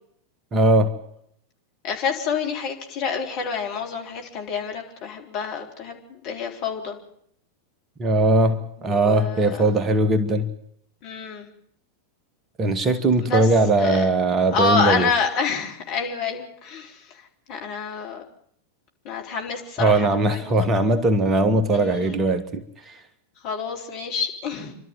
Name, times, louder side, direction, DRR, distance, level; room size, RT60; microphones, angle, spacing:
voice 1, 0.5-0.9 8.0-10.5 12.6-15.1 19.8-23.0, right 2 dB, 25° right, 1.5 m, -20 dB
voice 2, 1.8-7.0 8.8-9.7 11.0-11.5 13.2-13.5 13.8-14.1 14.5-17.1 17.5-18.2 19.0-20.7 21.7-22.2 23.4-24.7, left 5 dB, 45° left, 4.0 m, -28 dB
28.0 x 12.5 x 9.3 m
figure-of-eight pair, 90°, 0 cm